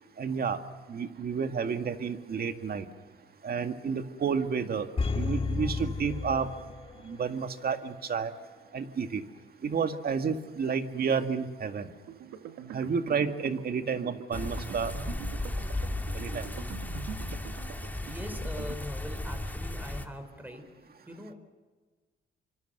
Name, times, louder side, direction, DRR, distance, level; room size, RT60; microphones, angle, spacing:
voice 1, 0.2-0.6 0.9-2.9 3.4-6.5 7.0-8.3 8.7-9.2 9.6-11.9 12.7-14.9 16.1-16.5, right 6 dB, 50° right, 7 dB, 2.0 m, -31 dB
sound 1, 5.0-7.2 7.5-7.6, left 4 dB, 30° left, 1.7 m, -32 dB
sound 2, 12.0-18.8, right 9 dB, 85° right, 1.8 m, -44 dB
sound 3, 14.3-20.1, left 1 dB, 10° left, 2.3 m, -35 dB
voice 2, 18.0-20.7 21.1-21.4, left 1 dB, 10° right, 7 dB, 5.0 m, -42 dB
26.0 x 25.0 x 6.8 m, 1.4 s
cardioid pair, 90°, 20 cm